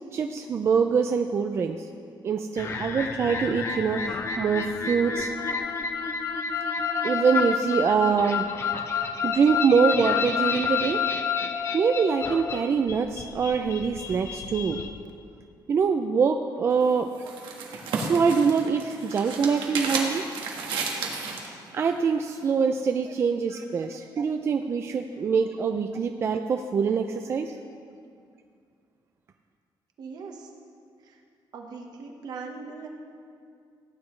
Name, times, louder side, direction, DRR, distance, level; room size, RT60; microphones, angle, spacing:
voice 1, 0.1-1.9 2.2-5.3 7.0-8.5 9.2-11.0 11.7-14.8 15.7-17.1 17.7-20.3 21.4-27.6, right 5 dB, 30° right, 6 dB, 0.3 m, -24 dB
sound 1, 2.6-14.9, left 6 dB, 35° left, 0.6 m, -29 dB
sound 2, 16.7-21.5, right 4 dB, 80° right, 1.5 m, -32 dB
voice 2, 30.0-30.5 31.0-31.2 31.5-32.9, right 4 dB, 55° right, 2 dB, 1.2 m, -40 dB
16.5 x 9.5 x 3.2 m, 2.3 s
cardioid pair, 180°, 8 cm